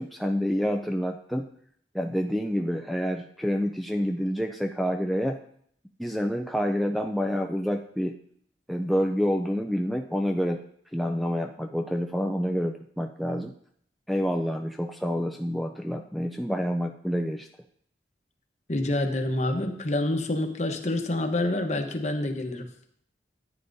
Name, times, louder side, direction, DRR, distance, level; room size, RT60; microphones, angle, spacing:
voice 1, 0.0-1.5 1.9-5.4 6.0-8.2 8.7-10.6 10.9-13.5 14.1-17.5, equal, ahead, 2 dB, 0.4 m, -28 dB
voice 2, 18.7-22.7, left 1 dB, 40° left, 5 dB, 1.0 m, -27 dB
14.0 x 9.4 x 2.7 m, 0.66 s
head